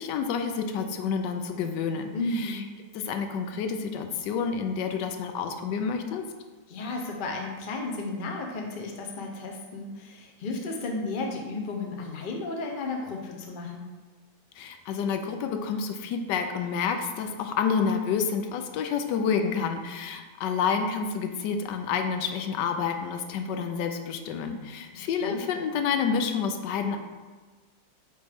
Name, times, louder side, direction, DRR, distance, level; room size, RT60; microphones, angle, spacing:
voice 1, 0.0-2.6 2.9-6.3 14.5-27.0, left 6 dB, 85° left, 6 dB, 1.2 m, -29 dB
voice 2, 2.1-2.7 6.7-13.9 25.2-25.4, left 2 dB, 45° left, 1 dB, 0.6 m, -33 dB
9.0 x 3.2 x 3.5 m, 1.3 s
omnidirectional pair, 1.9 m